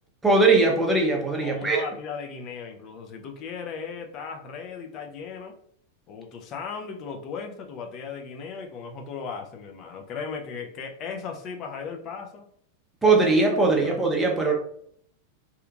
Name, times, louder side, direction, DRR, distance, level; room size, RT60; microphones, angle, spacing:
voice 1, 0.2-1.8 13.0-14.5, right 3 dB, 10° right, 0 dB, 0.7 m, -20 dB
voice 2, 1.4-5.6 6.1-12.5 13.8-14.0, left 5 dB, 40° left, 4 dB, 0.5 m, -36 dB
2.8 x 2.4 x 2.3 m, 0.67 s
hypercardioid pair, 110°, 0 cm